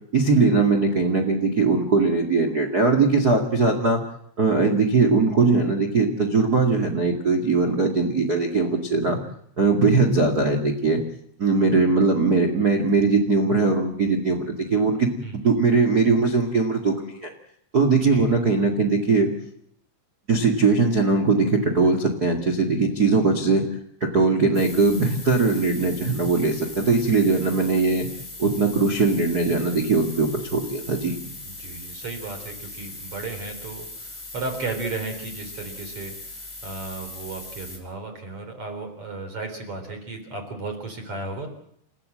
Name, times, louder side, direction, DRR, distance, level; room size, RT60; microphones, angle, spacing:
voice 1, 0.1-4.0 4.4-9.2 9.6-11.0 11.4-15.1 15.4-17.3 17.7-19.3 20.3-23.6 24.0-28.1 28.4-31.1, right 3 dB, 85° right, 2 dB, 0.8 m, -20 dB
sound 1, 24.5-37.8, left 2 dB, ahead, 4.7 m, -39 dB
voice 2, 31.2-36.1 36.6-41.5, right 3 dB, 30° right, 6 dB, 3.9 m, -34 dB
29.5 x 14.5 x 7.7 m, 0.70 s
omnidirectional pair, 5.9 m